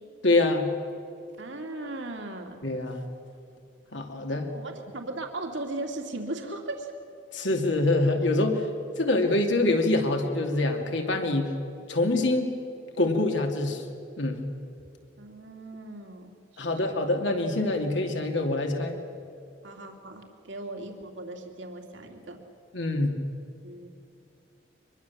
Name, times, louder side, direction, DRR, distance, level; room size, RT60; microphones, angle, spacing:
voice 1, 0.2-0.7 2.6-3.0 3.9-4.5 7.3-8.7 9.0-11.6 11.9-12.5 13.0-13.8 14.2-14.4 16.6-19.0 22.7-23.2, left 2 dB, 65° left, 3 dB, 2.6 m, -25 dB
voice 2, 1.4-2.6 4.5-6.9 15.2-16.3 16.6-16.7 19.6-22.4 23.6-23.9, right 2 dB, 65° right, 3 dB, 2.4 m, -37 dB
24.0 x 21.5 x 7.2 m, 2.7 s
head